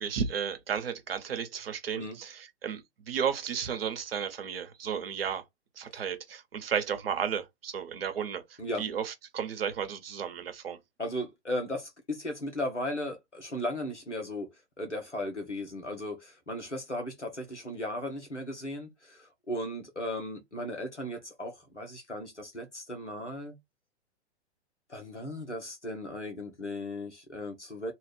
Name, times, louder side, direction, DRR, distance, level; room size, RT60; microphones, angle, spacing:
voice 1, 0.0-5.4 5.8-10.8, right 7 dB, 55° right, 1.0 m, -33 dB
voice 2, 11.0-14.5 14.8-23.6 24.9-27.9, left 1 dB, 90° left, 1.4 m, -36 dB
3.0 x 2.5 x 3.3 m
figure-of-eight pair, 110°, 34 cm